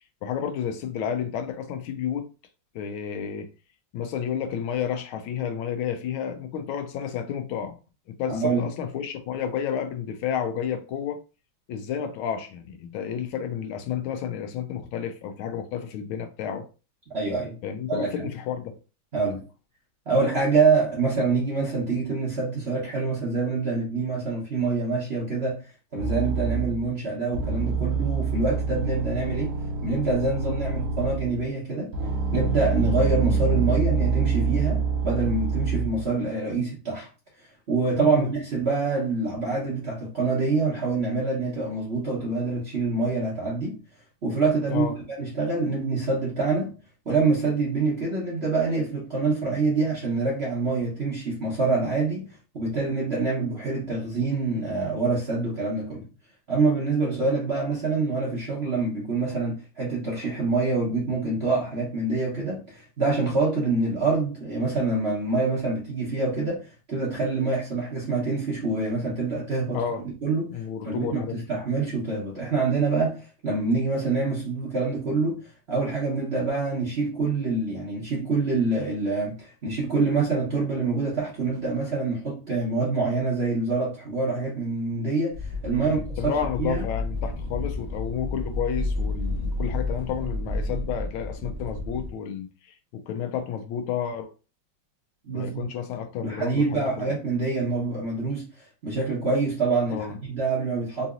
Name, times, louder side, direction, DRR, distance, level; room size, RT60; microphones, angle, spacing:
voice 1, 0.2-2.3 2.7-3.5 3.9-7.8 8.1-11.2 11.7-16.7 17.6-18.8 38.0-38.3 44.7-44.9 69.7-70.0 70.5-71.4 85.7-94.3 95.3-97.1 99.9-100.2, left 8 dB, 80° left, 1.4 m, -31 dB
voice 2, 8.3-8.7 17.1-17.6 17.9-18.3 19.1-19.4 20.1-25.6 25.9-29.5 29.8-31.9 32.3-37.1 37.7-43.8 44.2-44.9 45.2-46.7 47.1-56.1 56.5-69.8 70.2-86.8 95.3-95.7 96.2-101.1, right 3 dB, 45° right, 0.8 m, -26 dB
sound 1, 26.0-26.9 27.3-31.4 31.9-36.1, right 5 dB, 70° right, 1.5 m, -26 dB
sound 2, 85.3-92.1, left 2 dB, 20° right, 0.6 m, -31 dB
3.9 x 2.7 x 2.4 m
omnidirectional pair, 2.2 m